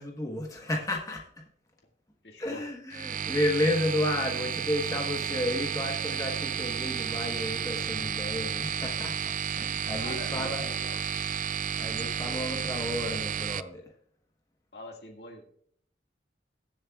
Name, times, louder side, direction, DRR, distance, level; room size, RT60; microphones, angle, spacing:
voice 1, 0.0-1.4 2.4-10.7 11.8-13.9, left 1 dB, 20° left, 0 dB, 1.2 m, -32 dB
voice 2, 2.2-2.6 10.0-11.0 14.7-15.5, left 1 dB, 65° left, 2 dB, 2.0 m, -43 dB
sound 1, 2.9-13.6, right 8 dB, 45° right, 0.4 m, -32 dB
21.5 x 7.3 x 2.4 m, 0.65 s
head